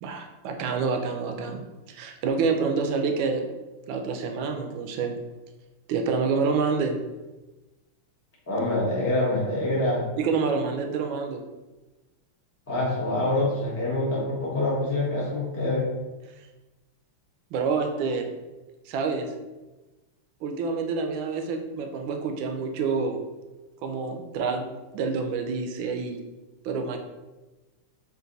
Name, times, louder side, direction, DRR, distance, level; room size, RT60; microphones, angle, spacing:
voice 1, 0.0-3.4 3.9-5.1 5.9-7.0 10.2-11.4 17.5-18.3 18.9-19.3 20.4-23.2 23.8-24.7 24.9-26.2 26.6-27.0, right 5 dB, 75° right, 4 dB, 1.3 m, -27 dB
voice 2, 8.5-10.0 12.7-15.9, left 2 dB, 25° left, -7 dB, 0.3 m, -25 dB
3.9 x 2.6 x 3.9 m, 1.1 s
omnidirectional pair, 2.4 m